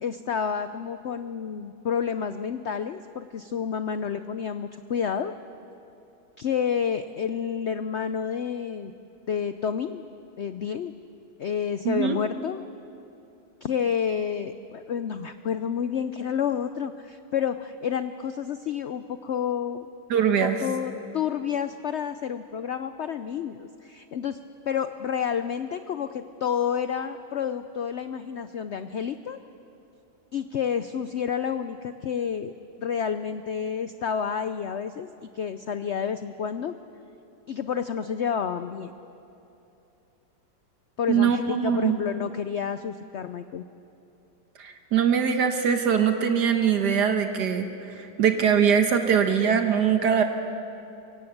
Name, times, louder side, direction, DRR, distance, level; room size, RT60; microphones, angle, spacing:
voice 1, 0.0-5.3 6.4-8.9 9.3-10.1 10.4-10.9 11.4-12.6 13.6-19.9 20.4-24.4 24.7-29.4 30.3-32.5 32.8-36.7 37.5-38.9 41.0-43.6, left 7 dB, 70° left, 10 dB, 0.6 m, -29 dB
voice 2, 11.8-12.2 20.1-20.6 41.1-42.0 44.6-50.2, right 7 dB, 75° right, 6 dB, 1.7 m, -22 dB
24.0 x 17.5 x 8.0 m, 2.8 s
omnidirectional pair, 1.8 m